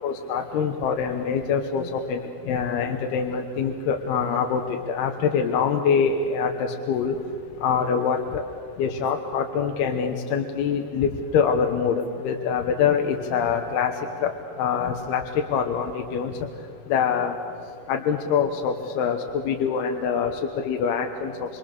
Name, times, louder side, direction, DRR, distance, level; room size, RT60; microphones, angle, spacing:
voice 1, 0.0-4.6 4.9-7.2 7.6-8.4 8.8-13.9 14.2-16.3 16.9-17.3 17.9-19.2 19.4-21.6, left 6 dB, 75° left, 4 dB, 3.0 m, -24 dB
26.5 x 26.0 x 6.7 m, 2.6 s
omnidirectional pair, 4.9 m